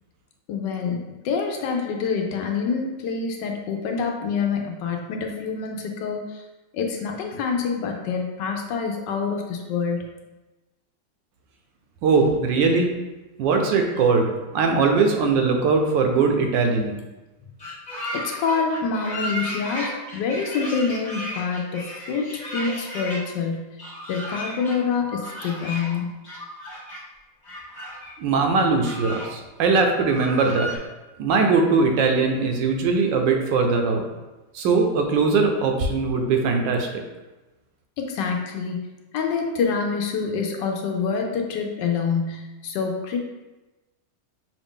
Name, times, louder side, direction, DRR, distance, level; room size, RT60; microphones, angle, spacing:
voice 1, 0.5-6.4 6.7-10.1 18.1-23.8 24.1-26.2 38.0-38.8 39.1-43.2, left 5 dB, 75° left, 2 dB, 1.2 m, -26 dB
voice 2, 12.0-12.9 13.4-17.0 28.2-30.7 31.2-34.0 34.5-36.9, right 4 dB, 80° right, 3 dB, 1.3 m, -20 dB
sound 1, 17.6-23.2 23.8-24.8 25.0-26.0 26.2-27.0 27.4-28.1 28.5-29.3 29.6-29.7 30.0-30.8, equal, 15° left, 0.9 m, -34 dB
5.4 x 2.4 x 3.6 m, 1.1 s
omnidirectional pair, 2.0 m